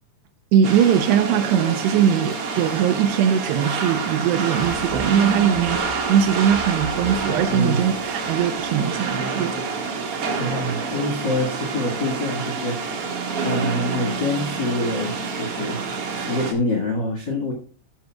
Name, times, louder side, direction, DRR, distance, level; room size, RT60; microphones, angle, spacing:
voice 1, 0.5-9.7, right 9 dB, 80° right, 2.5 m, -20 dB
sound 1, 0.6-16.5, right 4 dB, 60° right, 1.5 m, -27 dB
sound 2, 4.5-9.1 9.4-9.5, equal, 40° left, 6.5 m, -41 dB
voice 2, 7.5-7.8 10.4-13.1 13.4-15.8 16.2-17.5, left 1 dB, 80° left, 0.9 m, -26 dB
13.5 x 11.5 x 2.3 m
omnidirectional pair, 5.3 m